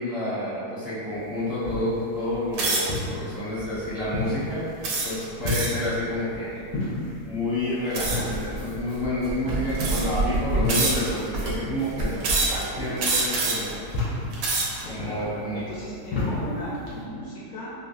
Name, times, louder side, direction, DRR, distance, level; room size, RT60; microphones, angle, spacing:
voice 1, 0.0-4.6 5.0-6.6 7.2-13.9 14.9-15.6, left 1 dB, ahead, -12 dB, 0.8 m, -29 dB
sound 1, 1.1-17.0, left 2 dB, 90° left, 1.5 m, -34 dB
sound 2, 2.5-3.0 3.6-3.9 4.8-5.9 7.9-8.3 9.2-9.3 9.7-10.2 10.7-11.3 12.2-12.6 13.0-13.7 14.2-14.8, right 3 dB, 85° right, 1.2 m, -26 dB
sound 3, 7.9-11.6 11.9-12.7, right 2 dB, 60° right, 0.8 m, -30 dB
voice 2, 14.7-17.7, equal, 70° left, -7 dB, 1.0 m, -37 dB
3.7 x 2.3 x 2.5 m, 2.4 s
omnidirectional pair, 1.8 m